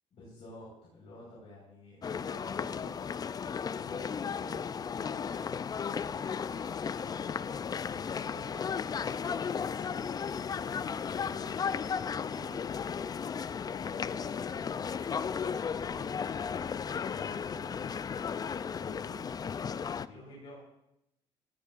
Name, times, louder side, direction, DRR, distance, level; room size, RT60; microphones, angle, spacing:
voice 1, 0.1-2.9 3.7-7.6 7.8-9.8 10.8-13.3 13.7-14.7 15.6-16.8 17.0-17.9 18.7-20.6, left 1 dB, 60° left, -5 dB, 4.6 m, -52 dB
sound 1, 2.0-20.1, left 6 dB, 35° left, 0.4 m, -35 dB
15.0 x 14.5 x 2.5 m, 0.85 s
cardioid pair, 80°, 12 cm